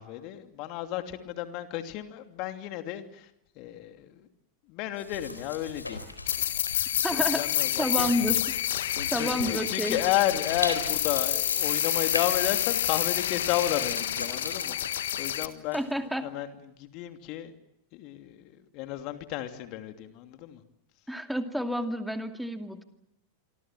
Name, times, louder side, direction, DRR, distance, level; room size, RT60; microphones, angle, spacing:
voice 1, 0.0-3.3 3.6-4.3 4.7-6.0 7.1-8.3 9.0-15.8 16.1-17.5 17.9-20.6, left 13 dB, 40° left, 8 dB, 2.8 m, -32 dB
sound 1, 4.9-16.1, left 2 dB, 80° left, 3.9 m, -40 dB
sound 2, 6.3-15.5, left 11 dB, 60° left, 1.6 m, -29 dB
voice 2, 7.0-7.4 7.8-8.5 9.1-10.0 15.7-16.3 21.1-22.8, equal, ahead, 7 dB, 2.5 m, -29 dB
sound 3, 9.4-9.7 11.5-12.4 13.2-13.5 14.0-15.3, right 1 dB, 85° right, 1.4 m, -42 dB
27.0 x 25.0 x 7.6 m, 0.80 s
figure-of-eight pair, 90°, 0 cm